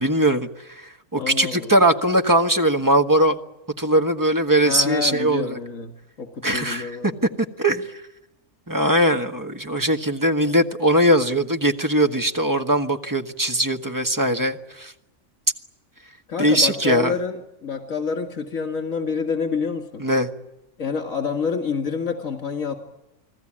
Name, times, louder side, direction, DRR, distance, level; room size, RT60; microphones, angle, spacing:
voice 1, 0.0-3.4 3.8-5.6 6.4-7.0 7.6-7.9 8.7-14.9 16.4-17.2 20.0-20.3, right 1 dB, 15° right, 6 dB, 1.4 m, -20 dB
voice 2, 1.2-1.7 4.6-5.9 6.2-7.2 16.3-20.0 20.8-22.7, left 5 dB, 80° left, 4 dB, 2.4 m, -27 dB
29.5 x 20.5 x 8.8 m, 0.93 s
omnidirectional pair, 1.4 m